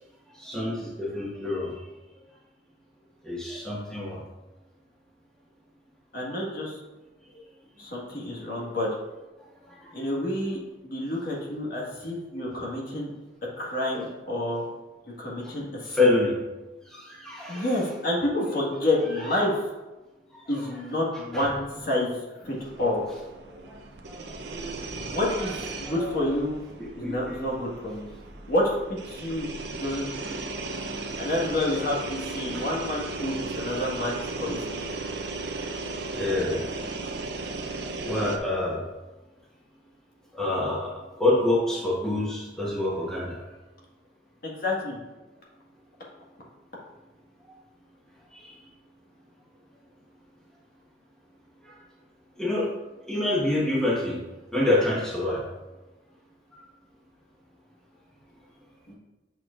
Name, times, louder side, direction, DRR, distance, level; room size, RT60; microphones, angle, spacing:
voice 1, 0.3-1.8 3.2-4.2 9.8-10.0 13.9-14.1 15.4-15.5 15.8-16.3 16.9-17.8 20.3-20.6 21.3-21.5 23.5-23.7 24.1-24.8 25.8-26.2 26.8-27.4 32.5-32.6 36.1-36.6 38.0-38.8 40.3-43.4 48.3-48.5 51.6-51.7 52.4-52.7 53.1-54.2 54.5-55.4, left 2 dB, 5° left, -6 dB, 1.3 m, -27 dB
voice 2, 6.1-6.8 7.8-8.9 9.9-13.1 13.6-14.7 15.2-16.1 17.5-19.6 20.5-22.2 22.4-23.0 24.9-26.6 26.9-28.1 28.5-28.7 29.1-29.5 29.7-30.1 31.2-34.7 44.4-45.0 58.9-59.0, left 1 dB, 50° left, -3 dB, 1.6 m, -29 dB
sound 1, 22.4-38.4, right 3 dB, 65° right, 0.7 m, -36 dB
7.8 x 6.5 x 2.5 m, 1.1 s
head